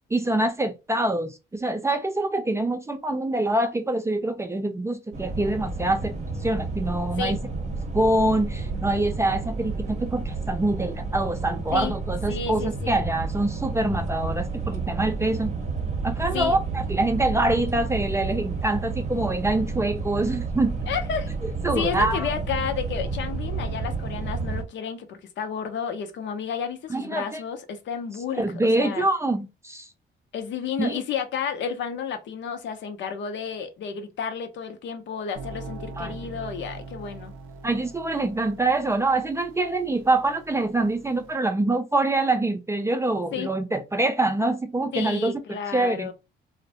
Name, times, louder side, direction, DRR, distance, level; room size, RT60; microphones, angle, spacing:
voice 1, 0.1-6.2 6.4-7.4 7.9-15.5 16.0-20.8 21.4-22.3 26.9-27.4 28.3-29.9 30.8-31.0 36.0-36.1 37.6-46.1, right 2 dB, 15° right, 0.3 m, -25 dB
sound 1, 5.1-24.6, right 4 dB, 35° right, 0.7 m, -31 dB
voice 2, 12.3-13.0 16.3-16.6 20.9-21.3 21.7-28.4 28.8-29.1 30.3-37.3 43.3-43.5 44.9-46.1, left 7 dB, 65° left, 0.6 m, -31 dB
sound 2, 35.3-41.3, right 3 dB, 85° right, 0.5 m, -42 dB
2.6 x 2.1 x 2.6 m
cardioid pair, 90°, 20 cm